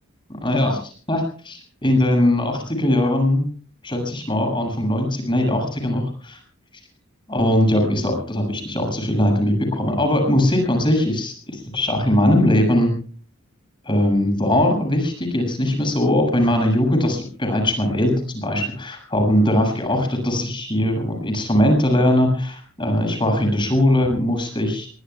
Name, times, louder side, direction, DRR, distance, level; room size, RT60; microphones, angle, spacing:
voice 1, 0.4-3.5 3.8-6.4 7.3-12.9 13.8-24.9, left 1 dB, 25° left, 3 dB, 7.6 m, -20 dB
27.0 x 22.5 x 2.4 m, 0.42 s
head